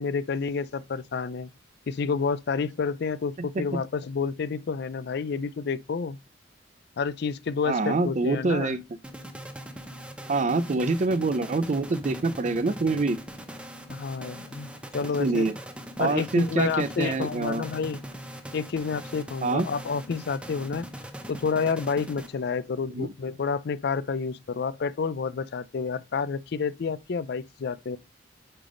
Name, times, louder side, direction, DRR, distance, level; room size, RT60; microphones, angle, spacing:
voice 1, 0.0-1.5 1.9-6.2 7.0-8.8 13.9-14.7 14.9-15.5 16.0-18.0 18.5-20.9 21.3-28.0, left 5 dB, 60° left, 0.4 m, -29 dB
voice 2, 7.6-8.8 10.3-13.2 15.2-15.6 16.0-17.6 19.4-19.7 22.9-23.1, right 3 dB, 40° right, 0.4 m, -25 dB
sound 1, 9.0-22.7, equal, 5° right, 0.7 m, -41 dB
8.7 x 3.4 x 3.8 m
head